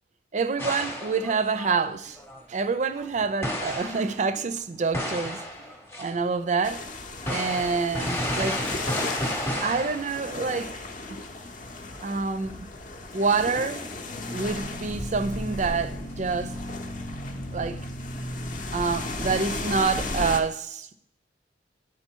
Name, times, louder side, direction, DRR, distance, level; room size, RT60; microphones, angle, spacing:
voice 1, 0.3-2.2 2.5-5.7 6.0-6.8 7.3-8.7 9.6-10.7 11.1-11.2 12.0-12.6 13.1-13.9 14.3-16.5 17.5-17.8 18.7-20.9, right 4 dB, 40° right, 0.4 m, -27 dB
sound 1, 0.6-4.4 4.9-6.1 6.4-6.5 7.2-10.5 10.8-10.9 11.2-11.3 12.1-12.2 12.5-12.7 13.1-14.4 16.1-16.2 17.6-17.8, equal, 15° left, 0.8 m, -33 dB
sound 2, 6.6-20.4, left 2 dB, 45° left, 0.7 m, -35 dB
10.0 x 3.7 x 4.5 m
head